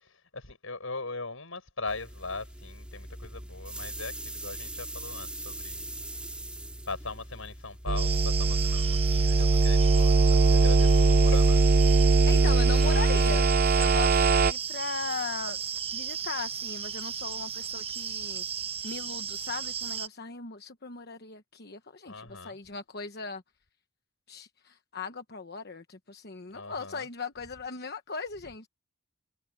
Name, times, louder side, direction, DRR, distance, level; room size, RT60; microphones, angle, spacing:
voice 1, 0.0-6.0 6.9-11.6 11.9-12.2 22.1-22.6 26.5-27.1, left 3 dB, 70° left, 7.1 m, -40 dB
sound 1, 1.9-8.2, right 1 dB, 5° right, 2.0 m, -41 dB
sound 2, 7.9-14.5, right 3 dB, 45° right, 0.5 m, -21 dB
sound 3, 8.0-20.1, right 7 dB, 30° right, 1.1 m, -35 dB
voice 2, 12.3-13.5 13.8-15.6 15.9-18.4 18.8-23.4 24.3-28.7, left 4 dB, 50° left, 1.2 m, -38 dB
head